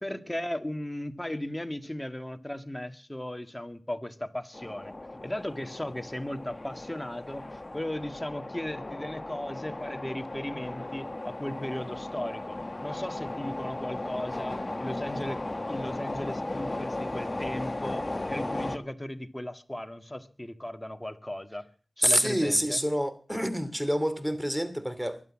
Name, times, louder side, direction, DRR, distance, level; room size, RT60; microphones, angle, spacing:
voice 1, 0.0-4.9 5.2-15.4 15.7-21.7 22.0-22.8, left 1 dB, 15° left, 1.9 m, -36 dB
sound 1, 4.5-18.8, left 2 dB, 35° left, 1.4 m, -36 dB
voice 2, 22.0-25.2, equal, 5° right, 2.7 m, -27 dB
23.0 x 8.3 x 7.4 m
cardioid pair, 45°, 0 cm